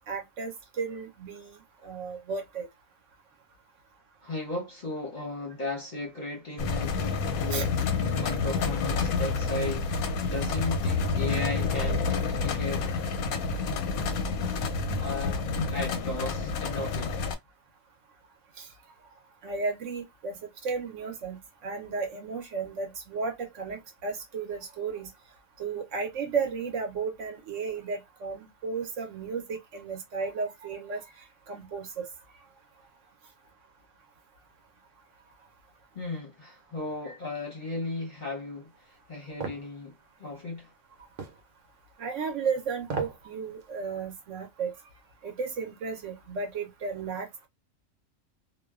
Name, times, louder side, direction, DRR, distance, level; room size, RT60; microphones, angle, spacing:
voice 1, 0.0-2.7 7.5-7.7 18.6-18.7 19.4-25.1 25.6-31.0 31.5-32.1 37.1-37.2 42.0-44.7 45.2-47.5, right 5 dB, 65° right, 0.9 m, -34 dB
voice 2, 4.2-12.9 15.0-17.2 35.9-39.9 40.2-40.7, left 2 dB, 45° left, 0.7 m, -36 dB
sound 1, 6.6-17.3, left 4 dB, 90° left, 1.0 m, -29 dB
sound 2, 39.4-39.7 41.2-41.4 42.8-43.2 43.6-43.7, right 4 dB, 85° right, 1.1 m, -34 dB
2.5 x 2.2 x 2.2 m
omnidirectional pair, 1.5 m